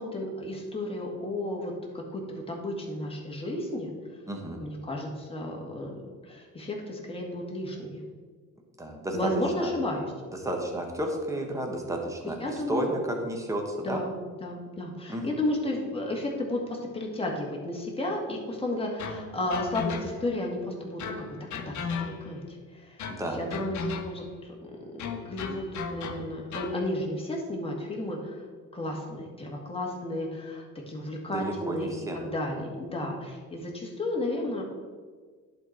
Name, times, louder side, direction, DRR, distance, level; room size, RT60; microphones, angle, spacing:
voice 1, 0.0-3.9 4.6-5.9 6.2-8.0 9.1-10.0 12.4-12.9 13.8-21.0 21.3-21.4 21.7-23.1 23.3-28.5 28.7-34.6, left 1 dB, 15° left, -1 dB, 1.9 m, -33 dB
voice 2, 4.3-4.6 8.8-9.3 9.6-9.7 10.4-14.0 15.1-15.2 23.1-23.7 31.3-32.2, right 1 dB, 10° right, 1 dB, 1.3 m, -32 dB
sound 1, 19.0-20.4 21.0-22.5 23.0-24.4 25.0-26.8, left 5 dB, 55° left, 0.9 m, -36 dB
10.5 x 4.4 x 4.6 m, 1.6 s
cardioid pair, 115°, 34 cm